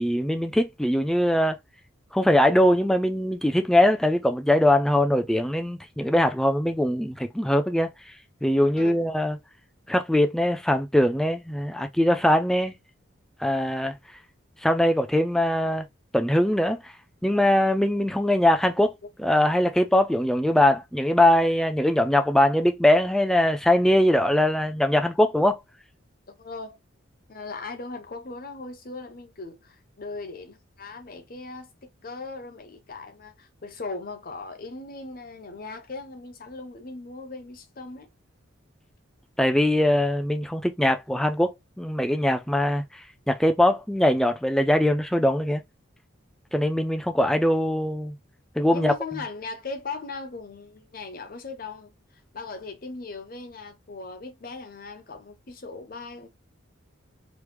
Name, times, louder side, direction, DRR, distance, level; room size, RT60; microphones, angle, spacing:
voice 1, 0.0-1.6 2.1-7.9 8.4-9.4 9.9-12.7 13.4-13.9 14.6-15.9 16.1-16.8 17.2-25.6 39.4-45.6 46.5-48.2 48.6-48.9, left 1 dB, ahead, 0.3 m, -22 dB
voice 2, 8.8-9.3 26.4-26.8 27.3-31.7 32.0-38.1 48.7-56.3, left 3 dB, 45° left, 0.7 m, -38 dB
3.1 x 2.2 x 3.4 m
head